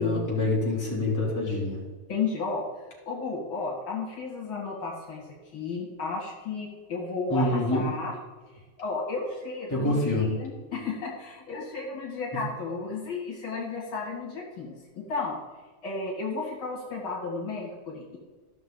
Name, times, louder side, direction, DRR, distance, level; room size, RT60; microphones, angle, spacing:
voice 1, 0.0-1.8 7.3-7.8 9.7-10.3, left 2 dB, 10° left, -6 dB, 3.1 m, -26 dB
voice 2, 2.1-2.6 3.1-5.3 5.5-8.1 8.8-15.4 15.8-18.2, left 4 dB, 65° left, -3 dB, 2.8 m, -33 dB
14.5 x 6.5 x 3.9 m, 1.4 s
omnidirectional pair, 2.4 m